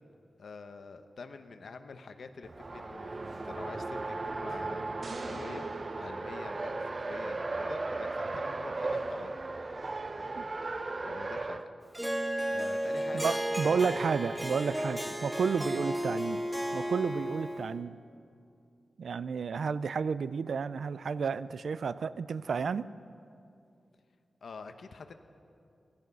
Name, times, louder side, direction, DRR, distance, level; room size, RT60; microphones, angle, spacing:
voice 1, 0.4-5.7 6.0-9.4 10.1-11.6 11.9-14.0 15.0-15.1 24.4-25.1, left 4 dB, 75° left, 8 dB, 0.9 m, -47 dB
Race car auto racing, 2.4-11.7, right 3 dB, 35° right, 0.6 m, -36 dB
sound 1, 5.0-7.3, right 3 dB, 60° right, 1.2 m, -46 dB
Harp, 11.9-17.8, equal, 10° right, 1.0 m, -33 dB
voice 2, 13.1-16.4 16.7-18.0 19.0-22.9, right 5 dB, 80° right, 15 dB, 0.4 m, -31 dB
17.0 x 15.5 x 5.4 m, 2.5 s
wide cardioid pair, 110°, 0 cm